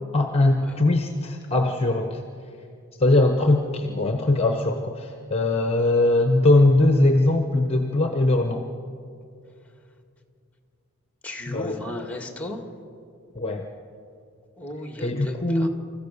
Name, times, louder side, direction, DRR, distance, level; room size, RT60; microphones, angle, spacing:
voice 1, 0.1-2.2 3.0-8.6 11.5-11.8 13.3-13.6 15.0-15.7, left 2 dB, 30° left, 5 dB, 1.1 m, -21 dB
voice 2, 11.2-12.6 14.6-15.7, left 1 dB, 5° left, 4 dB, 2.1 m, -35 dB
28.0 x 15.0 x 6.8 m, 2.4 s
head